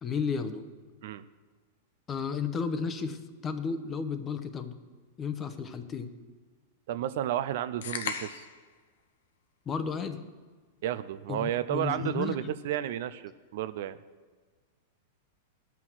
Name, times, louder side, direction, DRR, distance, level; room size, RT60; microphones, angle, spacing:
voice 1, 0.0-0.7 2.1-4.7 5.2-6.1 9.7-10.2 11.3-12.5, left 5 dB, 25° left, 10 dB, 0.8 m, -33 dB
voice 2, 6.9-8.5 10.8-14.0, right 11 dB, 65° right, 13 dB, 0.5 m, -32 dB
sound 1, 7.8-8.6, left 6 dB, 75° left, 0.8 m, -35 dB
13.0 x 5.9 x 6.2 m, 1.5 s
hypercardioid pair, 130°, 0 cm